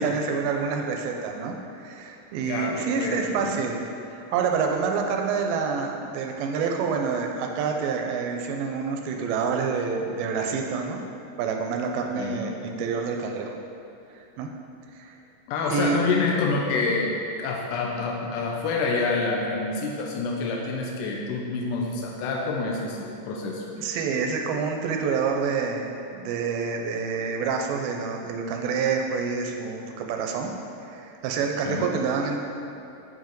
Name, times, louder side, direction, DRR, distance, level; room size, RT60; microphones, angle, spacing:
voice 1, 0.0-3.8 4.1-11.0 11.4-13.6 14.4-14.5 14.9-15.2 15.7-16.0 23.7-30.5 30.8-32.4, right 5 dB, 90° right, 3 dB, 2.4 m, -27 dB
voice 2, 2.4-3.5 12.1-12.4 15.5-17.1 17.4-23.6 31.7-31.8, left 4 dB, 80° left, -1 dB, 1.9 m, -27 dB
7.8 x 4.7 x 4.5 m, 2.8 s
omnidirectional pair, 4.3 m